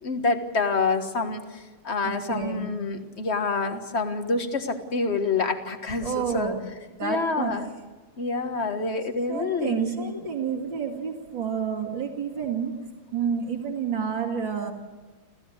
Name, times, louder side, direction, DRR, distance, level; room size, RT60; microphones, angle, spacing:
voice 1, 0.0-6.5 7.0-7.7 8.2-10.1, left 3 dB, 35° left, 7 dB, 1.6 m, -27 dB
voice 2, 2.0-2.7 6.0-6.6 7.0-7.5 9.3-12.7 13.1-14.7, right 7 dB, 60° right, 3 dB, 3.1 m, -29 dB
27.0 x 15.5 x 8.1 m, 1.2 s
omnidirectional pair, 2.4 m